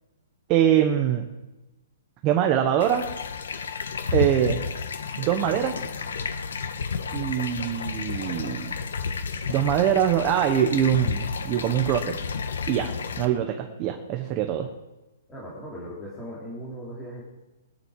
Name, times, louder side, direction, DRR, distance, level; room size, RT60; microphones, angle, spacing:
voice 1, 0.5-1.2 2.2-3.1 4.1-4.6 5.2-5.8 7.1-8.7 9.5-12.2 12.7-12.9 13.2-14.7, right 10 dB, 20° right, 5 dB, 1.1 m, -23 dB
sound 1, 2.8-13.3, left 5 dB, 90° left, 1.5 m, -31 dB
voice 2, 15.3-17.2, equal, 10° left, -6 dB, 2.8 m, -38 dB
23.0 x 10.0 x 4.8 m, 1.1 s
hypercardioid pair, 175°, 0 cm